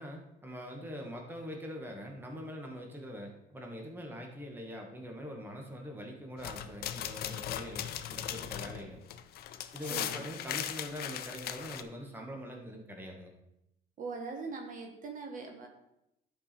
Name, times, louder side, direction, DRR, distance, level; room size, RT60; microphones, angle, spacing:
voice 1, 0.0-9.1 9.7-13.3, equal, 10° right, 1 dB, 1.5 m, -43 dB
sound 1, 6.4-11.8, left 10 dB, 65° left, 0.6 m, -38 dB
voice 2, 9.9-10.3 14.0-15.7, right 4 dB, 50° right, 3 dB, 1.5 m, -41 dB
11.0 x 4.7 x 4.4 m, 0.86 s
cardioid pair, 110°, 17 cm